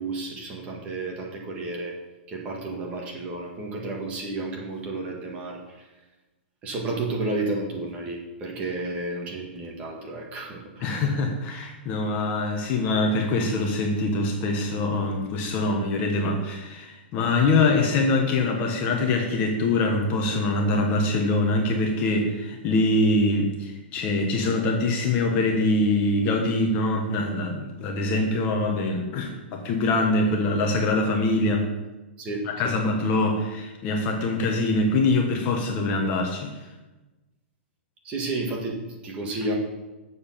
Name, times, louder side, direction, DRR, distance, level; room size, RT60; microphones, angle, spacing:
voice 1, 0.0-1.9 2.3-5.8 6.6-11.0 32.2-32.7 38.0-39.6, right 2 dB, 20° right, -1 dB, 1.6 m, -32 dB
voice 2, 10.8-31.7 32.4-36.7, left 2 dB, 25° left, 2 dB, 1.1 m, -24 dB
7.0 x 6.3 x 7.3 m, 1.1 s
hypercardioid pair, 170°, 6 cm